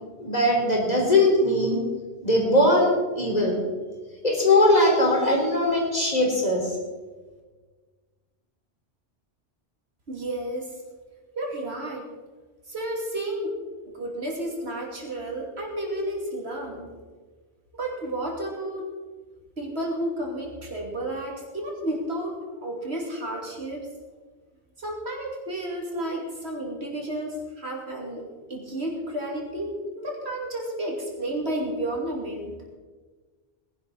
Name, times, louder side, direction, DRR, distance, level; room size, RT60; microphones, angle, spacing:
voice 1, 0.2-1.8 2.2-3.6 4.2-6.7, left 1 dB, 40° left, -2 dB, 3.6 m, -20 dB
voice 2, 10.1-10.7 11.4-12.0 12.7-13.6 13.9-16.9 17.8-18.9 19.6-23.9 24.8-28.2 28.5-32.6, right 1 dB, 70° right, -1 dB, 3.0 m, -31 dB
19.5 x 11.0 x 4.2 m, 1.4 s
omnidirectional pair, 1.1 m